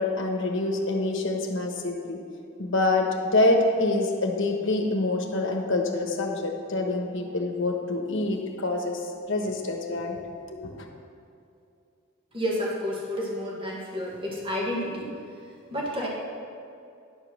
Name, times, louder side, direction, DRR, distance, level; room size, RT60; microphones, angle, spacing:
voice 1, 0.0-2.2 2.6-9.0 9.3-10.2 10.5-10.8, left 2 dB, 65° left, 2 dB, 1.1 m, -26 dB
voice 2, 12.3-15.1 15.7-16.1, equal, 25° right, -4 dB, 1.6 m, -30 dB
10.5 x 5.2 x 5.9 m, 2.5 s
head